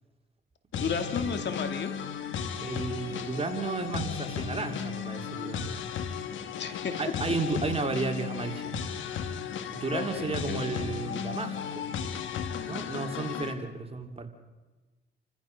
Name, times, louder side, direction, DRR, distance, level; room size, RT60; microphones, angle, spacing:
sound 1, 0.7-13.5, left 7 dB, 85° left, 1.8 m, -35 dB
voice 1, 0.8-1.9 6.6-6.9 9.9-10.6, left 6 dB, 65° left, 7 dB, 2.5 m, -32 dB
voice 2, 2.6-5.7 7.0-8.8 9.7-11.9 12.6-14.3, right 3 dB, 30° right, 4 dB, 2.9 m, -33 dB
28.5 x 14.5 x 6.6 m, 1.2 s
cardioid pair, 80°, 20 cm